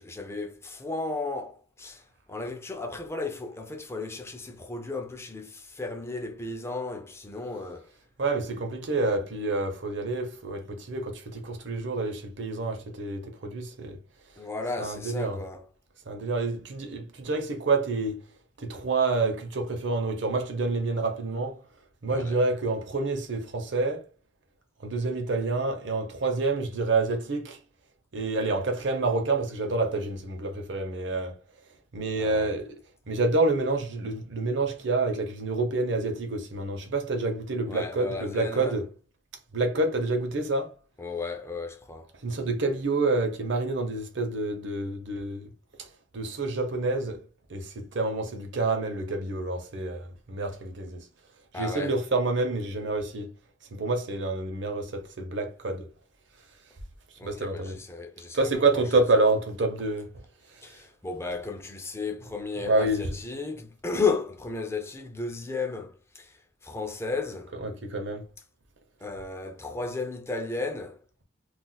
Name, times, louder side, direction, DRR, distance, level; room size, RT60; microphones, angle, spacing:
voice 1, 0.0-2.0 2.3-7.9 14.4-15.7 22.1-22.4 32.2-32.5 37.7-38.8 41.0-42.1 51.5-51.9 57.2-58.8 60.6-67.6 69.0-71.0, left 3 dB, 15° left, 0.5 m, -34 dB
voice 2, 8.2-14.0 14.8-15.4 16.1-18.2 18.6-21.6 22.0-24.0 24.8-27.6 28.1-31.3 31.9-32.7 33.1-38.9 39.5-40.7 42.2-45.5 45.8-45.9 46.1-47.2 47.5-51.0 51.5-53.3 53.8-55.8 57.2-57.8 58.3-60.1 62.6-63.1 67.6-68.2, right 3 dB, 65° right, 0.8 m, -28 dB
2.5 x 2.3 x 3.9 m
head